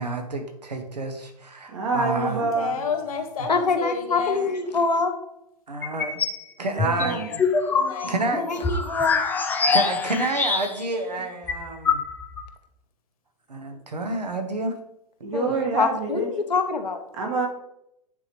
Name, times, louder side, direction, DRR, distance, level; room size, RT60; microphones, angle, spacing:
voice 1, 0.0-2.7 3.4-3.5 5.7-6.2 6.6-7.4 8.0-8.7 9.6-12.0 13.5-14.7 15.5-15.6, right 2 dB, 80° right, 6 dB, 1.1 m, -29 dB
voice 2, 1.7-2.7 6.7-7.3 15.2-16.3 17.1-17.5, right 3 dB, 50° right, 1 dB, 1.6 m, -26 dB
voice 3, 2.3-4.5 6.9-8.1, left 6 dB, 60° left, 5 dB, 1.2 m, -32 dB
voice 4, 3.5-5.1 8.4-9.2 15.3-17.0, left 4 dB, 85° left, 6 dB, 0.8 m, -25 dB
sound 1, 5.8-6.4 6.8-11.0 11.2-11.3 11.5-12.5, left 5 dB, 10° left, 0.4 m, -24 dB
9.5 x 3.5 x 3.1 m, 0.81 s
figure-of-eight pair, 110°, 21 cm